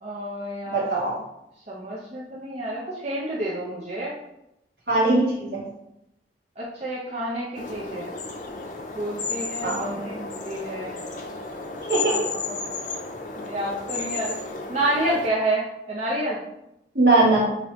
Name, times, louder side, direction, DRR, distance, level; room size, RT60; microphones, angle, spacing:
voice 1, 0.0-1.0 1.7-4.1 6.6-8.1 9.0-11.0 12.1-12.5 13.4-14.4 14.7-16.4, right 1 dB, 40° right, -6 dB, 0.6 m, -29 dB
voice 2, 0.7-1.1 4.9-5.6 9.6-9.9 11.9-12.3 16.9-17.5, right 2 dB, 60° right, -5 dB, 1.5 m, -20 dB
sound 1, 7.5-15.3, left 3 dB, 45° left, 0.6 m, -33 dB
5.5 x 3.0 x 3.0 m, 0.85 s
head